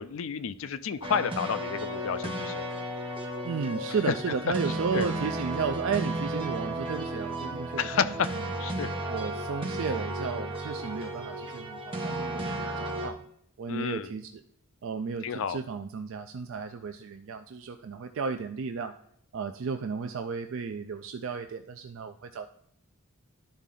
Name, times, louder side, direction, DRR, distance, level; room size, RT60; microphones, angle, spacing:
voice 1, 0.0-2.7 4.9-5.1 7.8-8.9 13.7-14.1 15.2-15.6, left 6 dB, 65° left, 13 dB, 0.4 m, -31 dB
sound 1, 1.0-13.1, right 1 dB, 25° right, 1.2 m, -34 dB
voice 2, 3.4-8.2 9.1-13.2 13.6-14.3 14.8-18.9 19.3-22.5, right 5 dB, 60° right, 8 dB, 0.4 m, -33 dB
11.5 x 4.1 x 3.8 m, 0.68 s
head